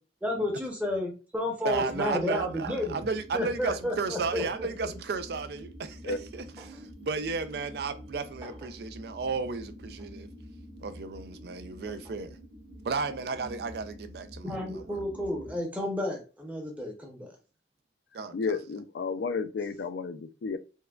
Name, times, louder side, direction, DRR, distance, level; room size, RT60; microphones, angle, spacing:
voice 1, 0.2-3.0 3.3-4.9 14.4-17.4, left 1 dB, 10° right, 0.7 m, -32 dB
voice 2, 1.6-10.3 10.8-12.4 12.8-14.5 18.1-18.6, right 4 dB, 60° right, 0.4 m, -33 dB
sound 1, 1.7-15.6, equal, 85° right, 1.5 m, -47 dB
sound 2, 6.6-6.9 7.3-7.4 8.4-8.8 10.0-10.1 11.9-12.2 13.4-13.6 14.8-14.9, right 2 dB, 25° right, 1.0 m, -51 dB
voice 3, 18.3-20.6, left 4 dB, 70° left, 0.4 m, -32 dB
4.5 x 2.2 x 2.3 m
head